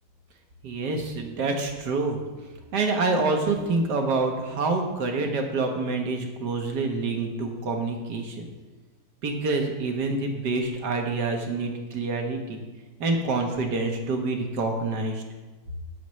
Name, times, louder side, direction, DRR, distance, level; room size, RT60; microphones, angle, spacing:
voice 1, 0.6-2.2 2.7-8.4 9.2-12.6 13.0-15.2, right 3 dB, 55° right, 3 dB, 1.7 m, -27 dB
17.5 x 6.8 x 3.2 m, 1.2 s
omnidirectional pair, 2.2 m